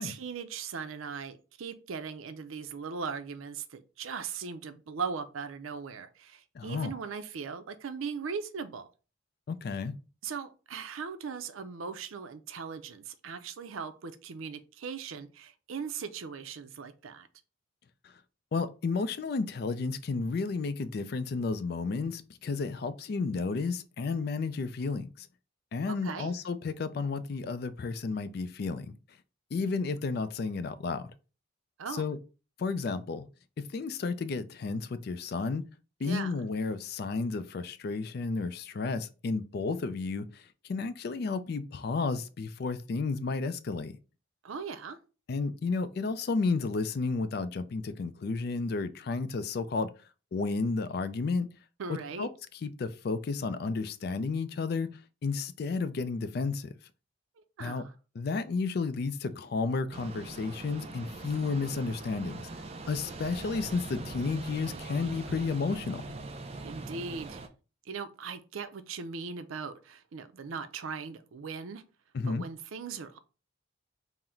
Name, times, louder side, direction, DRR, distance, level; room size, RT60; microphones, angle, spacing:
voice 1, 0.0-8.9 10.2-17.3 25.9-26.3 31.8-32.0 36.0-36.3 44.4-45.0 51.8-52.3 57.6-57.9 66.6-67.4 67.9-71.8 72.3-73.2, right 5 dB, 85° right, 0.5 m, -39 dB
voice 2, 6.6-6.9 9.5-9.9 18.5-25.3 25.7-28.9 29.5-31.1 31.9-32.2 32.6-33.3 33.6-35.6 36.0-40.3 40.7-43.9 45.3-49.9 50.3-51.5 52.2-52.3 52.6-54.9 55.2-56.7 57.6-57.8 58.2-62.4 62.9-66.0 72.1-72.4, left 4 dB, 50° left, 0.3 m, -32 dB
sound 1, 59.9-67.5, right 3 dB, 30° right, 0.4 m, -42 dB
3.8 x 2.1 x 4.3 m
head